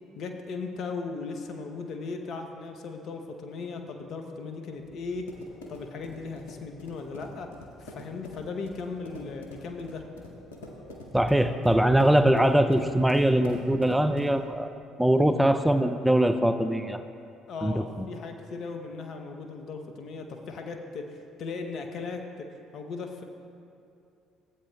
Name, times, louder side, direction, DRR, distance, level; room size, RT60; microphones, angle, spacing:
voice 1, 0.2-5.3 5.7-7.5 7.8-10.1 11.4-11.6 17.5-21.1 21.4-22.5 22.7-23.2, left 4 dB, 55° left, 4 dB, 0.8 m, -37 dB
sound 1, 4.9-14.5, left 1 dB, 85° left, 0.9 m, -45 dB
voice 2, 11.1-14.7 15.0-17.0 17.6-17.8, right 1 dB, 5° right, 8 dB, 0.4 m, -22 dB
14.5 x 8.5 x 2.3 m, 2.6 s
hypercardioid pair, 55°, 0 cm